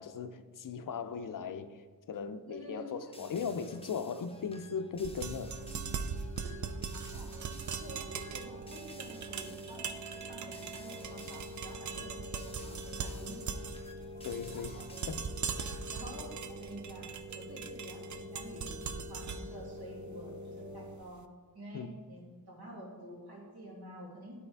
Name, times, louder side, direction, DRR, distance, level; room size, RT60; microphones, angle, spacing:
voice 1, 0.0-5.5 12.0-12.1 14.2-14.8 15.1-15.3 15.6-15.8 21.7-22.0, left 6 dB, 60° left, 0.5 m, -38 dB
voice 2, 2.4-3.5 6.4-7.3 7.8-13.5 14.5-14.9 15.7-17.1 17.3-21.2 21.5-24.3, right 1 dB, 80° right, 2.2 m, -49 dB
sound 1, 3.1-16.0, left 2 dB, 15° left, 0.6 m, -55 dB
sound 2, 3.2-21.0, equal, 20° right, 0.9 m, -47 dB
sound 3, 5.0-21.0, right 6 dB, 55° right, 0.4 m, -41 dB
12.0 x 4.3 x 3.4 m
wide cardioid pair, 120°, 37 cm